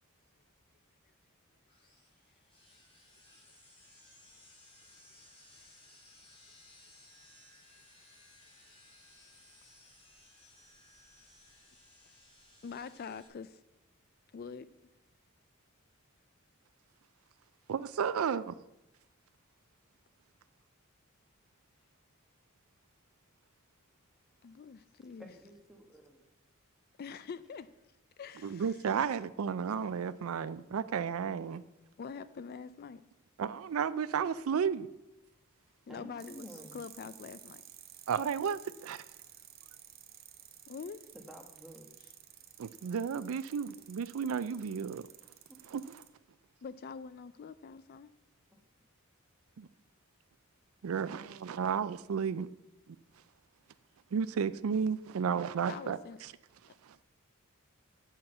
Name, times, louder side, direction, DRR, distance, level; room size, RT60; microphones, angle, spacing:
sound 1, 1.7-13.3, left 2 dB, 25° left, 2.6 m, -60 dB
voice 1, 12.6-13.6 14.3-14.7 24.4-25.3 27.0-27.7 28.2-28.7 32.0-33.0 35.9-37.6 40.7-41.0 46.6-48.1 55.7-56.2, left 6 dB, 45° left, 0.3 m, -44 dB
voice 2, 17.7-18.5 28.4-31.6 33.4-34.9 38.1-39.0 42.6-45.1 45.7-46.0 49.6-49.7 50.8-52.5 52.9-53.0 54.1-56.3 56.8-57.0, right 6 dB, 75° right, 0.4 m, -33 dB
voice 3, 24.6-26.3 35.9-36.8 41.1-41.9 45.5-45.7 48.5-48.6, equal, ahead, 1.3 m, -52 dB
sound 2, 36.2-46.1, right 11 dB, 45° right, 0.9 m, -54 dB
7.5 x 5.9 x 7.8 m
head